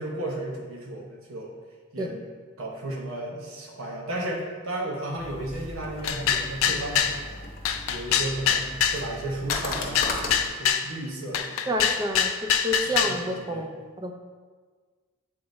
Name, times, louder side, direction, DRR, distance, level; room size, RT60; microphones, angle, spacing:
voice 1, 0.0-1.5 1.9-2.3 2.6-7.4 7.9-11.9 12.9-13.8, right 1 dB, 85° right, -1 dB, 1.0 m, -34 dB
sound 1, 5.2-10.5, left 2 dB, 45° left, 0.8 m, -37 dB
sound 2, 6.0-7.2 7.6-9.0 9.5-10.9 11.3-13.2, left 8 dB, 80° left, 0.4 m, -24 dB
voice 2, 11.7-14.1, equal, 20° right, 4 dB, 0.5 m, -29 dB
7.7 x 3.6 x 4.0 m, 1.5 s
head